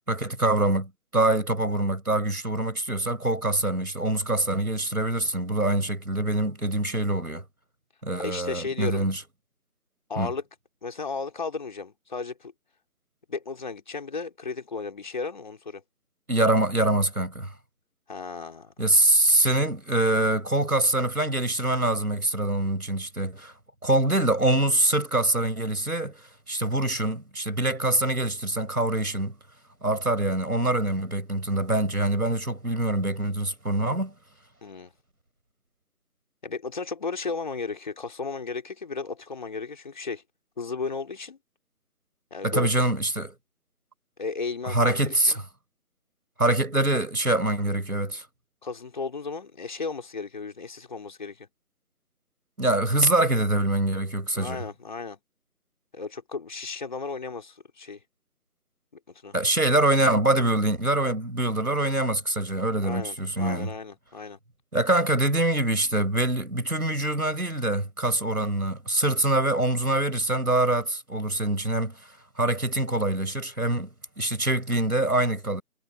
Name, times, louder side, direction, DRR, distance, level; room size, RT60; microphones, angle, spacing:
voice 1, 0.1-7.4 8.0-9.2 10.2-10.3 16.3-17.5 18.8-23.5 23.8-26.2 26.5-29.3 29.8-34.1 42.4-43.3 44.6-45.4 46.4-48.2 52.6-54.6 59.3-63.7 64.7-72.0 72.3-73.9 74.2-75.6, right 1 dB, 75° right, 6.2 m, -24 dB
voice 2, 8.2-9.0 10.1-10.4 10.8-12.5 13.3-15.8 18.1-18.7 34.6-34.9 36.4-40.2 40.6-41.4 42.3-42.8 44.2-45.4 48.6-51.5 54.4-55.2 55.9-58.0 59.1-59.4 62.8-64.4, left 4 dB, 30° left, 3.6 m, -34 dB
figure-of-eight pair, 160°, 45 cm